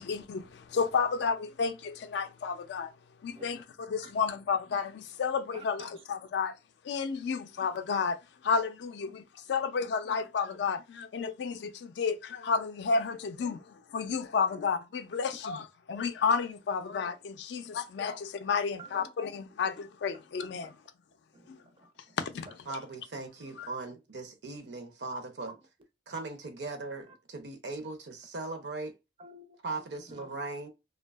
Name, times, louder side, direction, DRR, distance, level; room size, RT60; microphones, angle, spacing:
voice 1, 0.0-2.9 3.2-6.5 6.8-9.2 9.5-20.7 21.5-21.6 22.2-22.5 23.6-23.7, left 5 dB, 70° left, 0.3 m, -31 dB
voice 2, 5.5-6.0 9.6-9.7 14.5-14.6 18.8-19.1 20.3-20.4 20.6-20.7 21.3-22.2 22.5-22.6 23.4-24.0 25.5-25.7 27.1-27.2 29.2-30.4, right 2 dB, 30° right, 0.4 m, -52 dB
voice 3, 22.7-25.5 26.1-28.9 29.6-30.7, right 3 dB, 70° right, 0.6 m, -39 dB
2.6 x 2.2 x 2.2 m
head